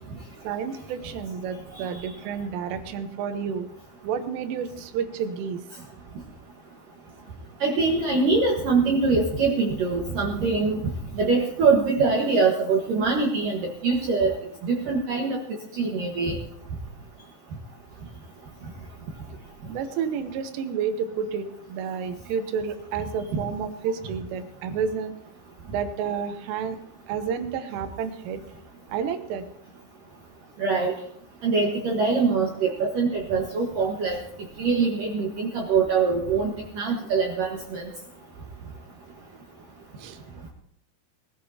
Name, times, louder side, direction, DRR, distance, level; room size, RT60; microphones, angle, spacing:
voice 1, 0.4-3.7 4.0-5.6 19.7-25.1 25.7-26.8 27.1-28.4 28.9-29.5 40.0-40.2, right 7 dB, 80° right, 8 dB, 3.6 m, -30 dB
voice 2, 7.6-10.9 11.1-14.4 14.6-15.4 15.7-16.4 23.3-23.4 30.6-31.0 31.4-34.2 34.6-37.9, right 4 dB, 65° right, -1 dB, 2.3 m, -23 dB
21.0 x 15.5 x 2.9 m, 0.72 s
omnidirectional pair, 5.8 m